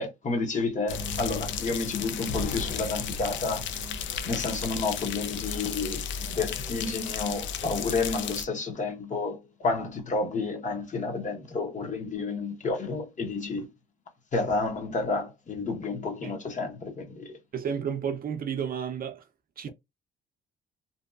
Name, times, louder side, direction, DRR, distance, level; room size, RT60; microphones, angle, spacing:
voice 1, 0.0-3.7 4.3-13.7 14.3-17.4, left 3 dB, 40° left, 0.8 m, -30 dB
sound 1, 0.9-8.4, left 6 dB, 70° left, 0.4 m, -33 dB
voice 2, 17.5-19.2 19.6-19.7, right 7 dB, 45° right, 0.5 m, -32 dB
2.6 x 2.2 x 2.3 m
cardioid pair, 90°, 20 cm